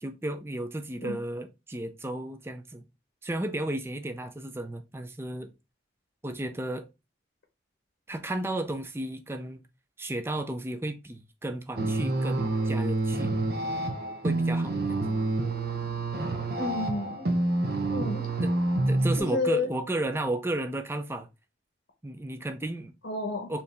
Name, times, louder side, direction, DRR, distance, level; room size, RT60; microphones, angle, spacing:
voice 1, 0.0-2.8 3.2-5.5 6.2-6.9 8.1-9.6 10.0-13.3 14.2-15.0 18.4-18.5 18.9-21.3 22.0-22.9 23.5-23.6, right 1 dB, 15° right, 0.4 m, -33 dB
sound 1, 11.8-19.2, right 2 dB, 55° right, 0.8 m, -28 dB
voice 2, 16.6-17.3 17.9-18.2 19.2-19.7 23.0-23.5, left 2 dB, 80° left, 0.9 m, -30 dB
4.5 x 2.8 x 3.3 m
head